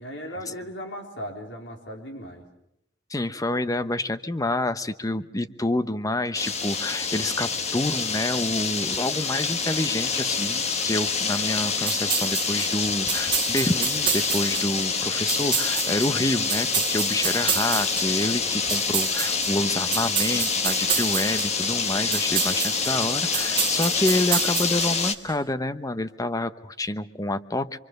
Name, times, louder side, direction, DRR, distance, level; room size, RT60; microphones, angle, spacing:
voice 1, 0.0-2.5, equal, 85° left, 3 dB, 3.9 m, -37 dB
voice 2, 3.1-27.8, left 1 dB, 20° left, 12 dB, 0.9 m, -28 dB
sound 1, 6.3-25.2, left 5 dB, 40° left, 1.3 m, -26 dB
sound 2, 11.9-25.3, right 9 dB, 30° right, 1.0 m, -29 dB
26.5 x 24.0 x 6.6 m, 0.80 s
head